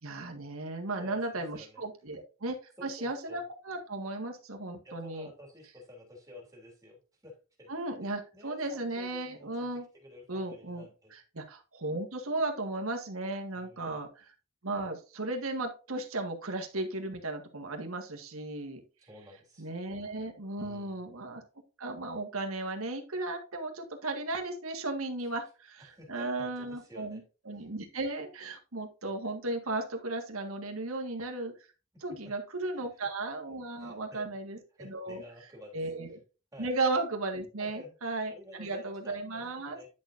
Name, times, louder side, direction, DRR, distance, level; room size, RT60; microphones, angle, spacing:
voice 1, 0.0-5.3 7.7-9.9 10.3-14.3 14.6-18.8 19.6-21.4 21.8-27.2 27.5-31.5 32.0-35.2 35.7-36.2 36.6-39.8, right 2 dB, 75° right, 3 dB, 1.8 m, -35 dB
voice 2, 1.0-1.8 2.8-3.4 4.8-7.7 8.0-11.1 13.5-13.9 19.1-19.7 20.6-21.0 25.8-27.2 27.5-27.7 31.9-32.3 32.7-32.8 33.8-34.3 34.7-35.8 36.5-36.7 37.6-37.9 38.3-39.9, left 1 dB, 15° right, 0 dB, 3.2 m, -51 dB
10.5 x 6.6 x 2.6 m, 0.33 s
head